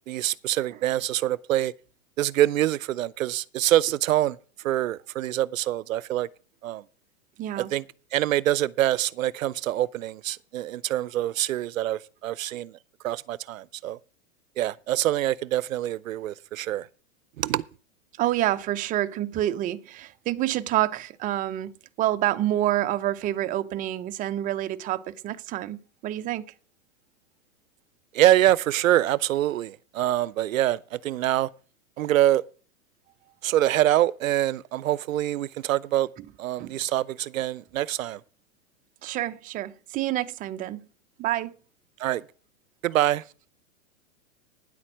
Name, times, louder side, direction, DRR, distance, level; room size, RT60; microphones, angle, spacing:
voice 1, 0.1-1.7 2.2-4.4 4.6-6.3 6.6-6.8 7.6-7.8 8.1-12.7 13.0-14.0 14.6-16.9 17.4-17.6 28.1-31.5 32.0-32.4 33.4-36.1 36.4-38.2 42.0-42.2 42.8-43.2, right 13 dB, 70° right, 0.6 m, -25 dB
voice 2, 7.4-7.7 18.2-26.4 36.6-36.8 39.0-40.9 41.2-41.5, right 13 dB, 20° right, 0.6 m, -28 dB
9.9 x 8.3 x 6.1 m
hypercardioid pair, 115°, 41 cm